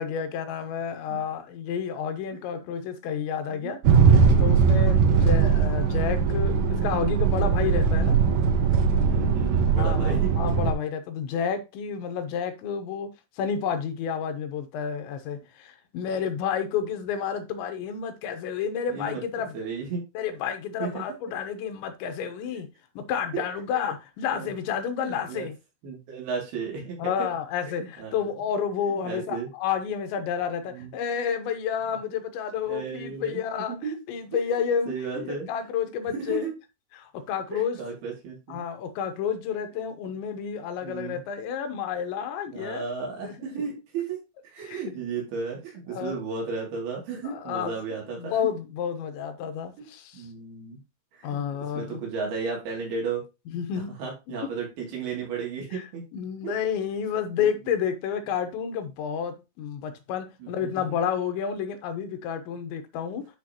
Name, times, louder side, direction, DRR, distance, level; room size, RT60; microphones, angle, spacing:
voice 1, 0.0-3.8 4.4-8.2 9.7-13.1 13.4-19.6 20.1-22.7 23.0-25.6 27.0-33.8 34.1-36.5 37.0-37.8 38.5-42.8 43.2-43.6 44.7-44.8 45.9-46.2 47.2-47.8 48.2-50.3 51.2-52.0 53.5-54.0 54.3-54.4 55.7-55.8 56.1-63.2, left 7 dB, 80° left, 3.2 m, -30 dB
sound 1, 3.8-10.7, right 5 dB, 80° right, 1.6 m, -20 dB
voice 2, 9.0-10.3 18.9-19.2 19.5-20.0 20.8-21.0 23.3-23.4 24.3-24.5 25.0-25.5 25.8-27.1 27.8-28.1 28.8-29.5 30.7-30.9 32.7-33.4 33.7-34.0 34.3-34.4 34.9-35.5 36.2-36.5 37.5-38.6 40.8-41.2 42.5-44.2 44.4-48.4 49.8-50.8 51.1-53.2 53.7-56.0 56.4-56.6 57.4-57.5 60.4-61.0, right 5 dB, 60° right, 4.5 m, -34 dB
10.5 x 5.7 x 2.9 m
omnidirectional pair, 5.2 m